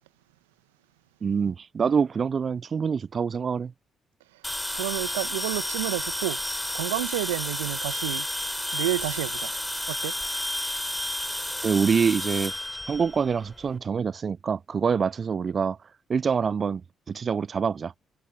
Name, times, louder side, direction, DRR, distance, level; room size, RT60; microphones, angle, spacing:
voice 1, 1.2-3.7 11.6-12.5 12.9-15.8 16.1-16.8 17.1-17.9, right 6 dB, 45° right, 0.4 m, -25 dB
sound 1, 4.4-13.7, left 1 dB, 5° left, 4.0 m, -31 dB
voice 2, 4.7-6.4 6.7-8.3 8.7-9.5 9.9-10.2 11.1-11.2, right 19 dB, 80° right, 1.4 m, -30 dB
figure-of-eight pair, 45°, 0 cm